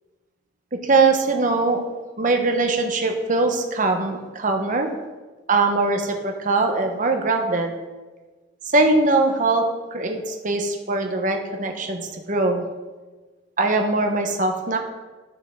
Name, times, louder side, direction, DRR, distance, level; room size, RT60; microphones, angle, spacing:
voice 1, 0.7-1.8 2.2-4.9 5.5-7.7 8.7-12.6 13.6-14.8, right 3 dB, 45° right, 4 dB, 1.1 m, -21 dB
12.5 x 6.4 x 3.8 m, 1.3 s
head